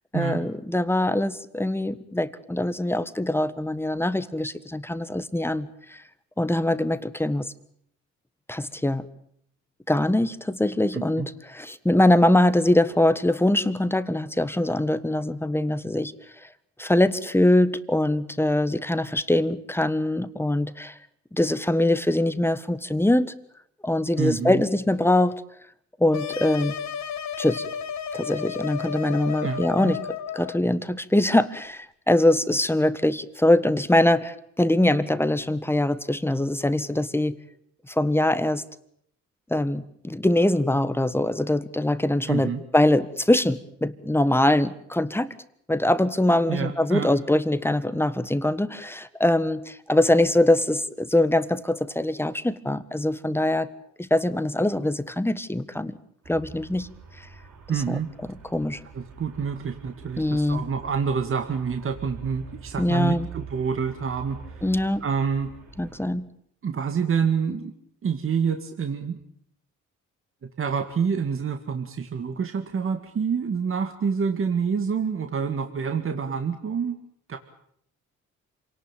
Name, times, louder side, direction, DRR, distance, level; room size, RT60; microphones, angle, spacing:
voice 1, 0.1-6.0 6.4-7.5 8.5-9.0 9.9-16.1 16.8-21.0 21.3-23.3 23.8-25.3 26.0-26.7 27.4-27.6 28.1-30.0 30.3-37.4 37.9-38.6 39.5-45.3 45.7-53.7 54.0-56.0 56.3-56.9 57.9-58.0 58.5-58.8 60.2-60.7 62.8-63.3 64.6-65.0 65.8-66.3, left 1 dB, 10° left, 13 dB, 1.5 m, -23 dB
voice 2, 10.9-11.3 24.2-24.6 29.4-29.9 42.3-42.6 46.5-47.1 57.7-58.1 58.9-64.7 65.0-65.5 66.6-67.7 68.0-69.2 70.6-77.0 77.3-77.4, right 6 dB, 45° right, 6 dB, 2.1 m, -27 dB
sound 1, 26.1-30.6, left 7 dB, 65° left, 1.8 m, -33 dB
Traffic noise roadway noise, 56.2-66.1, right 5 dB, 65° right, 6.8 m, -44 dB
27.0 x 18.5 x 9.0 m, 0.68 s
cardioid pair, 90°, 30 cm